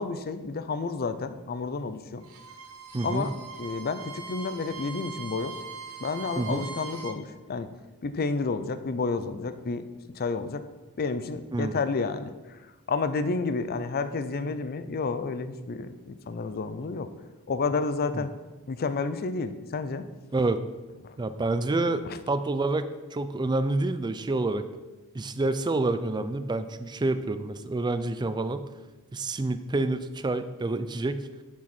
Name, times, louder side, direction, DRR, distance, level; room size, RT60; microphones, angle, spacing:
voice 1, 0.0-2.2 3.0-3.3 3.6-5.6 6.0-7.7 8.0-9.9 10.1-10.6 11.0-12.6 12.9-17.1 17.5-18.3 18.7-20.1 21.0-21.2 22.1-22.2, left 4 dB, 45° left, 11 dB, 0.5 m, -30 dB
Bowed string instrument, 2.2-7.2, right 5 dB, 75° right, 1.0 m, -41 dB
voice 2, 2.9-3.3 6.4-6.7 11.5-11.8 18.1-18.2 20.3-20.6 21.2-24.7 25.1-28.6 29.1-31.3, right 2 dB, 20° right, 11 dB, 0.4 m, -28 dB
7.7 x 7.0 x 4.4 m, 1.2 s
head